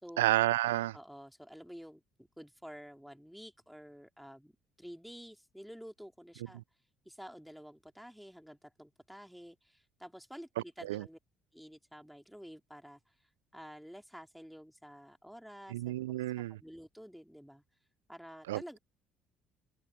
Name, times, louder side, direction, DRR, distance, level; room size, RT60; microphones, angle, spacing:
voice 1, 0.2-1.0 10.8-11.0 15.7-16.6 18.5-18.6, right 16 dB, 75° right, 0.4 m, -30 dB
voice 2, 0.9-4.5 4.8-6.6 7.1-11.2 11.5-16.0 16.4-17.6 18.1-18.8, equal, ahead, 3.9 m, -50 dB
figure-of-eight pair, 55°, 0 cm